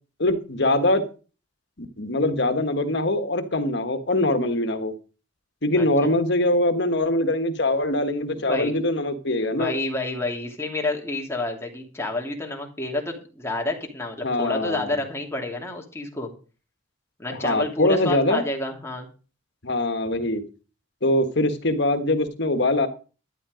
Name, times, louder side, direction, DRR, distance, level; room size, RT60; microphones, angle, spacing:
voice 1, 0.2-1.0 1.8-4.9 5.6-9.7 14.2-14.9 17.3-18.4 19.6-20.4 21.0-22.9, left 1 dB, 60° left, 9 dB, 1.6 m, -23 dB
voice 2, 5.8-6.1 8.4-8.7 9.5-16.3 17.2-19.1, left 2 dB, 15° left, 1 dB, 2.9 m, -29 dB
12.5 x 10.5 x 5.1 m, 0.36 s
head